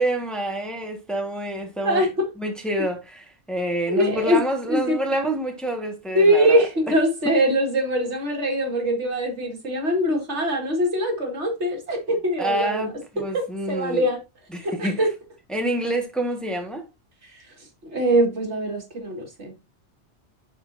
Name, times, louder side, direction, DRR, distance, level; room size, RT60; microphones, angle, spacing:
voice 1, 0.0-2.1 2.4-6.7 12.4-14.1 14.5-15.0 15.5-16.9, right 1 dB, ahead, 1.4 m, -27 dB
voice 2, 1.8-2.3 3.9-4.4 4.7-5.0 6.1-12.9 13.2-14.2 14.6-15.1 17.3-17.4 17.8-19.5, equal, 75° right, 2.3 m, -22 dB
11.0 x 4.3 x 2.6 m
omnidirectional pair, 1.2 m